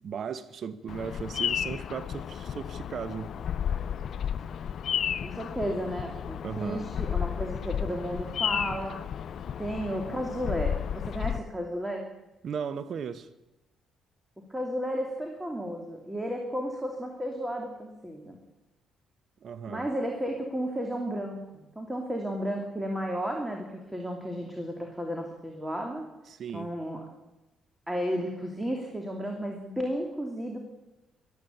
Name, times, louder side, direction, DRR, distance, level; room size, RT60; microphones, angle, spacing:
voice 1, 0.0-3.4 6.4-6.9 12.4-13.3 19.4-19.8 26.3-26.7, right 7 dB, 60° right, 0.9 m, -36 dB
Bird vocalization bird call bird song, 0.9-11.4, left 9 dB, 60° left, 0.7 m, -32 dB
voice 2, 5.2-8.9 9.6-12.0 14.5-18.4 19.7-21.4 21.8-26.0 26.5-27.1 27.9-30.6, equal, 10° right, 2.7 m, -33 dB
13.0 x 13.0 x 8.5 m
supercardioid pair, 70°, 0 cm